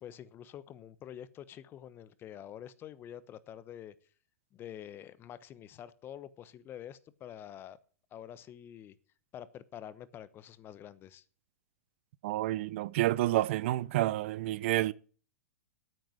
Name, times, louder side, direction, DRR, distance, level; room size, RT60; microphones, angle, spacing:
voice 1, 0.0-3.9 4.5-7.8 8.1-9.0 9.3-11.2, left 10 dB, 30° left, 0.9 m, -47 dB
voice 2, 12.2-14.9, right 16 dB, 55° right, 0.5 m, -29 dB
9.3 x 9.1 x 7.8 m
hypercardioid pair, 120°, 8 cm